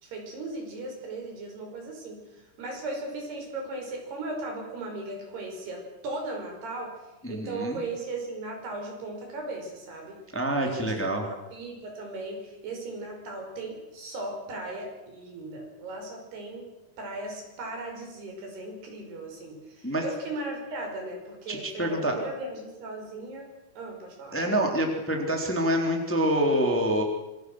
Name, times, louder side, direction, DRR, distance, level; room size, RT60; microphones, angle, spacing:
voice 1, 0.0-2.3 2.6-7.0 7.3-10.2 10.6-16.7 17.0-23.5 23.8-24.4, right 2 dB, 80° right, 2 dB, 7.6 m, -37 dB
voice 2, 7.2-7.8 10.3-11.3 19.8-20.0 21.5-22.2 24.3-27.0, right 1 dB, 5° left, 2 dB, 2.9 m, -26 dB
26.0 x 23.5 x 6.4 m, 1.0 s
omnidirectional pair, 4.6 m